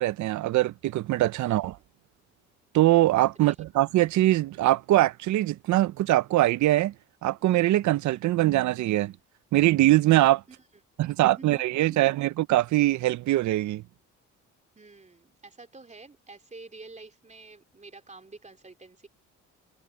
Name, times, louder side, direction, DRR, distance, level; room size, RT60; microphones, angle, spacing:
voice 1, 0.0-1.7 2.7-6.9 7.2-9.1 9.5-10.4 11.0-13.8, right 16 dB, 70° right, 0.6 m, -22 dB
voice 2, 11.1-11.6 11.9-12.1 14.7-19.1, right 3 dB, 25° right, 3.5 m, -48 dB
cardioid pair, 90°, 30 cm